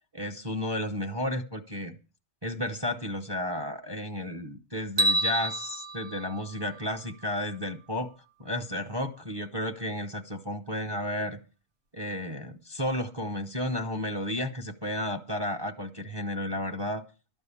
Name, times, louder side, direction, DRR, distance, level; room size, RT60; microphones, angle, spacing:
voice 1, 0.1-2.0 2.4-8.1 8.4-11.4 11.9-17.0, left 1 dB, 25° right, 6 dB, 0.7 m, -32 dB
sound 1, 5.0-7.2, right 1 dB, 60° right, 1.5 m, -29 dB
12.0 x 5.4 x 8.3 m, 0.36 s
omnidirectional pair, 1.2 m